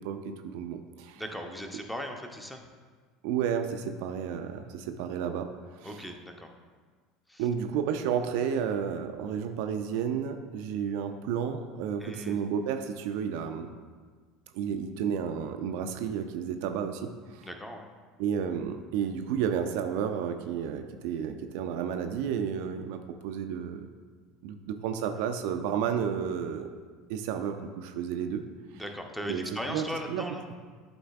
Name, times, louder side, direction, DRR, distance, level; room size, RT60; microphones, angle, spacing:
voice 1, 0.0-1.2 3.2-6.0 7.4-13.7 14.5-17.5 18.2-23.9 24.4-26.7 27.1-28.4 28.7-28.8 29.3-30.3, right 8 dB, 55° right, 6 dB, 0.4 m, -32 dB
voice 2, 1.2-2.6 5.8-6.5 7.3-7.4 12.0-12.4 17.4-17.9 28.7-30.4, equal, 5° left, 4 dB, 0.7 m, -38 dB
11.5 x 3.9 x 2.4 m, 1.5 s
figure-of-eight pair, 70°, 0 cm